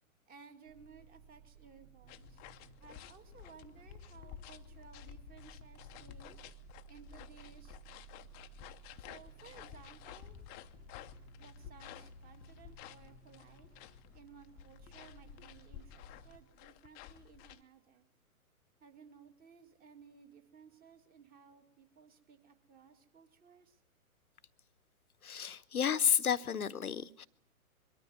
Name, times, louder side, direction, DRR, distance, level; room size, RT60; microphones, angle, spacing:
voice 1, 0.3-2.4 2.8-6.4 6.9-7.8 9.0-10.4 11.4-13.7 14.1-18.1 18.8-23.8, right 6 dB, 20° right, 2.3 m, -58 dB
sound 1, 0.6-16.4, right 4 dB, 65° right, 4.2 m, -57 dB
sound 2, 2.1-17.6, left 12 dB, 20° left, 0.8 m, -53 dB
voice 2, 25.2-27.3, left 8 dB, 80° left, 1.0 m, -31 dB
22.5 x 13.0 x 9.4 m
figure-of-eight pair, 125°, 43 cm